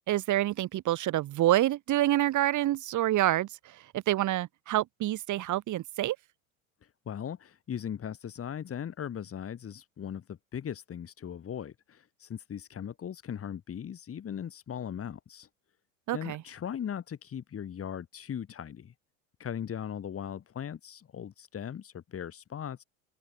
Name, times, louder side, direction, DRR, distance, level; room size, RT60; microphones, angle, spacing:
voice 1, 0.1-6.2 16.1-16.4, right 14 dB, 45° right, 3.5 m, -27 dB
voice 2, 7.1-15.5 16.1-18.9 19.4-22.8, left 8 dB, 30° left, 7.7 m, -38 dB
open air
hypercardioid pair, 90°, 42 cm